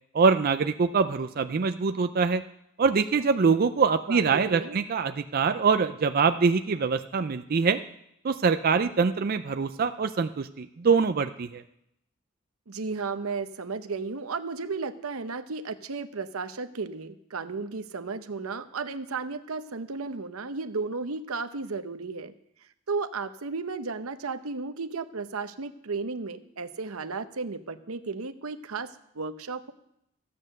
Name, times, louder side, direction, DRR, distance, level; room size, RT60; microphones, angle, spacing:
voice 1, 0.1-2.4 2.8-7.8 8.2-11.6, right 5 dB, 45° right, 9 dB, 0.4 m, -24 dB
voice 2, 4.1-4.8 12.7-22.3 22.9-29.7, right 4 dB, 85° right, 10 dB, 0.9 m, -34 dB
14.5 x 8.4 x 6.5 m, 0.78 s
head